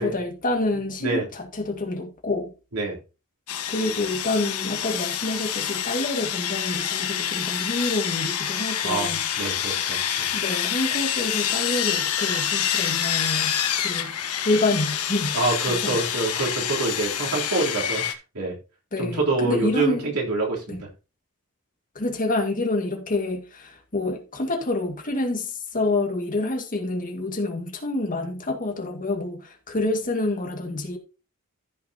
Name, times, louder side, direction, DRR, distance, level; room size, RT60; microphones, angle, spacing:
voice 1, 0.0-2.5 3.7-9.2 10.3-13.6 13.8-14.1 14.4-16.0 18.9-20.1 20.7-20.8 22.0-31.0, left 2 dB, 40° left, 2.0 m, -27 dB
Sawing, 3.5-18.1, left 9 dB, 85° left, 1.3 m, -27 dB
voice 2, 8.8-10.3 15.3-18.0 18.3-18.5 19.0-20.8, right 3 dB, 90° right, 3.5 m, -26 dB
14.0 x 6.1 x 2.9 m
head